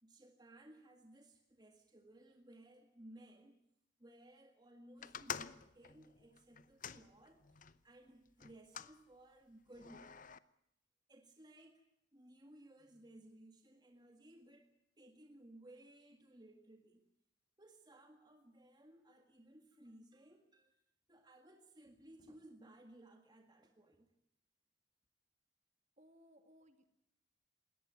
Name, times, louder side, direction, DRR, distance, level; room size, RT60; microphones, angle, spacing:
voice 1, 0.0-3.6 4.0-10.3 11.1-11.8 12.1-17.1 17.6-20.8 21.1-24.1, right 1 dB, 20° right, 5 dB, 1.9 m, -60 dB
sound 1, 5.0-7.8 8.4-9.0 9.7-10.4, left 7 dB, 45° left, 0.8 m, -48 dB
voice 2, 26.0-26.9, equal, 35° right, 8 dB, 2.3 m, -64 dB
21.0 x 18.0 x 9.4 m, 0.78 s
head